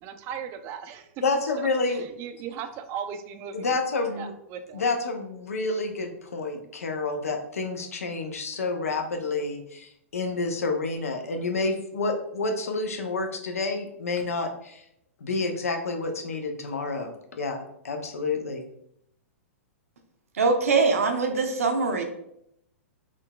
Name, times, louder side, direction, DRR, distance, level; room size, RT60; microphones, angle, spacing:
voice 1, 0.0-1.1 1.6-3.8 4.1-4.9, right 8 dB, 35° right, 8 dB, 0.3 m, -38 dB
voice 2, 1.2-2.0 3.5-4.3 4.7-14.8 15.2-18.6, left 3 dB, 80° left, 4 dB, 0.5 m, -29 dB
voice 3, 20.3-22.0, right 4 dB, 75° right, 4 dB, 0.6 m, -23 dB
3.7 x 2.3 x 2.2 m, 0.75 s
hypercardioid pair, 115°, 8 cm